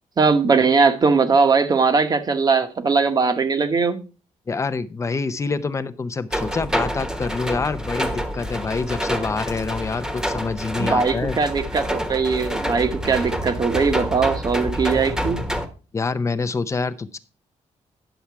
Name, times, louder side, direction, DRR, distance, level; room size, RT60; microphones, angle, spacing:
voice 1, 0.2-4.0 10.8-15.4, right 4 dB, 30° right, 1.1 m, -20 dB
voice 2, 4.5-11.4 15.9-17.2, left 4 dB, 25° left, 0.6 m, -26 dB
sound 1, 6.3-15.7, equal, 5° right, 1.2 m, -27 dB
10.5 x 7.1 x 4.6 m
wide cardioid pair, 155°, 12 cm